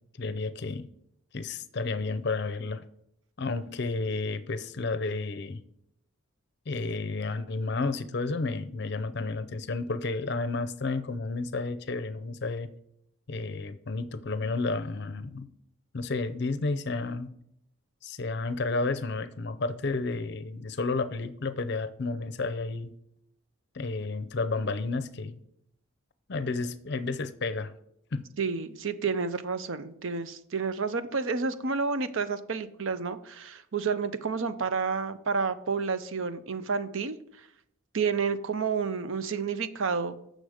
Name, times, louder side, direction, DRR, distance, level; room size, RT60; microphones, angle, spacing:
voice 1, 0.2-0.9 1.3-2.8 3.4-5.6 6.7-12.7 13.3-15.5 15.9-17.3 18.0-22.9 23.7-25.4 26.3-27.7 28.1-28.3, left 3 dB, 50° left, 12 dB, 0.6 m, -31 dB
voice 2, 28.4-37.2 37.9-40.2, right 5 dB, 70° right, 12 dB, 0.6 m, -30 dB
7.9 x 6.4 x 4.9 m, 0.75 s
head